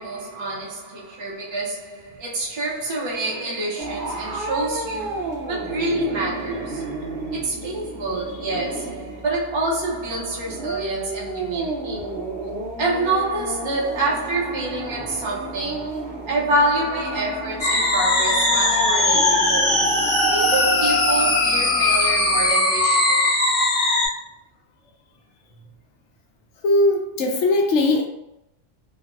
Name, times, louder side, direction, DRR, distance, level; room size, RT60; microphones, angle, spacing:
voice 1, 0.0-12.3 12.8-19.8 20.3-23.3, right 2 dB, 35° right, 0.5 m, -27 dB
sound 1, 3.8-22.5, right 2 dB, 60° right, 0.8 m, -33 dB
sound 2, 17.6-24.1, left 2 dB, 25° left, 0.9 m, -19 dB
voice 2, 26.6-28.1, left 2 dB, 75° left, 0.9 m, -19 dB
3.2 x 2.1 x 2.5 m
omnidirectional pair, 1.3 m